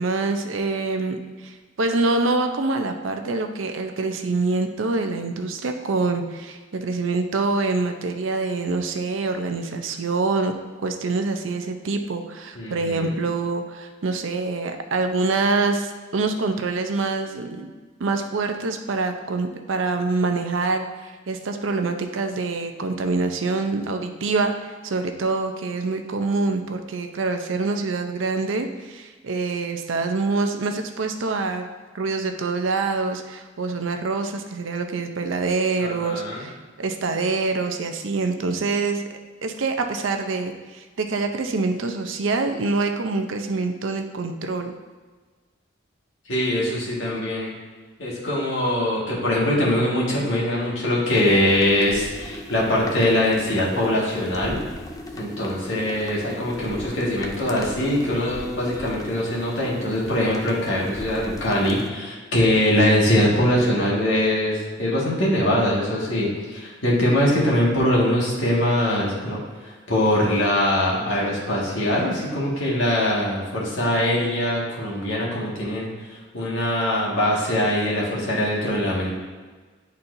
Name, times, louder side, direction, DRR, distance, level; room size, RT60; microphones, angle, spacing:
voice 1, 0.0-10.5 10.8-17.7 18.0-31.7 31.9-39.0 39.4-44.7, right 3 dB, 80° right, 6 dB, 0.6 m, -25 dB
voice 2, 12.5-13.2 35.8-36.4 46.2-47.5 48.0-54.6 55.2-75.9 76.3-79.1, left 1 dB, 75° left, -5 dB, 1.8 m, -22 dB
sound 1, 51.0-61.9, left 1 dB, 20° left, 0.4 m, -37 dB
10.5 x 4.2 x 2.6 m, 1.4 s
head